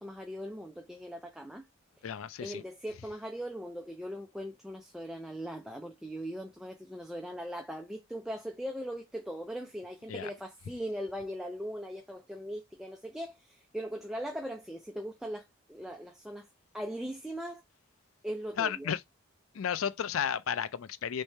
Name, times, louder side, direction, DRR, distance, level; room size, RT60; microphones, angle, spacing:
voice 1, 0.0-1.7 2.4-16.5 16.7-17.6 18.2-18.9, equal, ahead, 0.4 m, -40 dB
voice 2, 2.0-2.6 10.1-10.3 18.6-19.0 19.5-21.2, left 8 dB, 75° left, 0.4 m, -33 dB
3.2 x 3.2 x 4.3 m
head